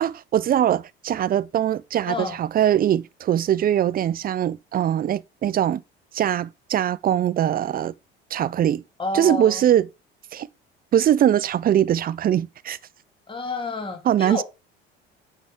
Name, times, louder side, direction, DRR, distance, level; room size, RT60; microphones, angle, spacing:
voice 1, 0.0-5.8 6.1-7.9 8.3-8.8 9.1-9.9 10.3-10.5 10.9-12.8 14.1-14.4, right 10 dB, 30° right, 0.5 m, -21 dB
voice 2, 2.1-2.4 9.0-9.6 13.3-14.4, left 3 dB, 15° left, 2.0 m, -29 dB
8.9 x 3.5 x 4.6 m
hypercardioid pair, 60°, 30 cm